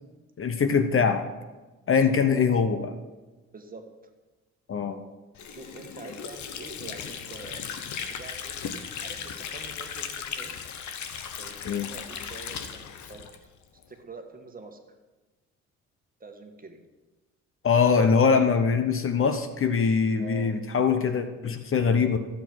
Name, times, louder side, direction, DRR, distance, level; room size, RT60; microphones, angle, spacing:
voice 1, 0.4-1.2 1.9-2.9 4.7-5.0 11.6-11.9 17.6-22.2, left 5 dB, 45° left, 8 dB, 0.9 m, -23 dB
voice 2, 3.5-4.1 5.5-7.6 8.1-8.6 9.0-10.6 11.4-13.3 13.9-15.0 16.2-16.8 20.2-20.5, right 3 dB, 30° right, 5 dB, 1.6 m, -45 dB
Water / Sink (filling or washing), 5.4-13.9, left 7 dB, 70° left, 1.1 m, -37 dB
14.5 x 7.8 x 4.6 m, 1.2 s
cardioid pair, 90°, 30 cm